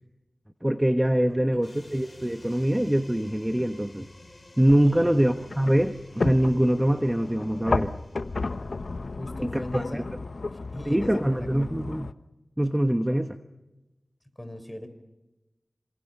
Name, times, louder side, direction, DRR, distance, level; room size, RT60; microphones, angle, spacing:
voice 1, 0.6-4.1 4.6-7.9 9.4-10.0 10.9-12.1 12.6-13.3, right 1 dB, 10° right, 7 dB, 1.2 m, -24 dB
voice 2, 1.3-1.6 4.8-5.3 9.2-10.1 10.3-11.7 13.1-13.2 14.4-14.9, left 1 dB, 15° left, 9 dB, 4.6 m, -39 dB
sound 1, 1.6-9.2, left 1 dB, 35° left, 5.0 m, -51 dB
sound 2, 4.7-12.1, left 3 dB, 70° left, 1.0 m, -33 dB
28.5 x 26.5 x 5.6 m, 1.0 s
wide cardioid pair, 50°, 0 cm